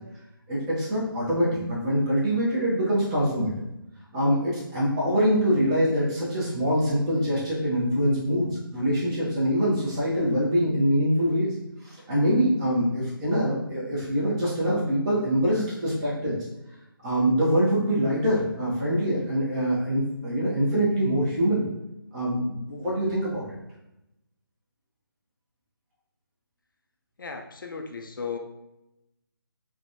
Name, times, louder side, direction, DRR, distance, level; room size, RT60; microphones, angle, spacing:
voice 1, 0.5-3.5 4.1-11.5 11.8-16.4 17.0-21.7 22.1-23.5, equal, 15° right, -8 dB, 0.6 m, -24 dB
voice 2, 27.2-28.4, left 5 dB, 60° left, 3 dB, 0.4 m, -35 dB
3.3 x 2.1 x 2.6 m, 0.90 s
figure-of-eight pair, 165°, 12 cm